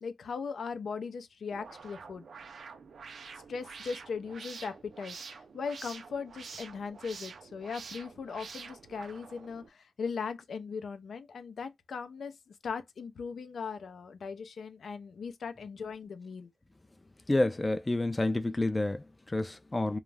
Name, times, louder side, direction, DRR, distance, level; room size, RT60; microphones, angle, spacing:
voice 1, 0.0-2.2 3.5-16.5, left 5 dB, 85° left, 0.5 m, -39 dB
sound 1, 1.5-9.7, right 5 dB, 80° right, 0.4 m, -47 dB
voice 2, 17.3-20.0, left 2 dB, 25° left, 0.4 m, -29 dB
2.4 x 2.1 x 3.2 m
cardioid pair, 75°, 0 cm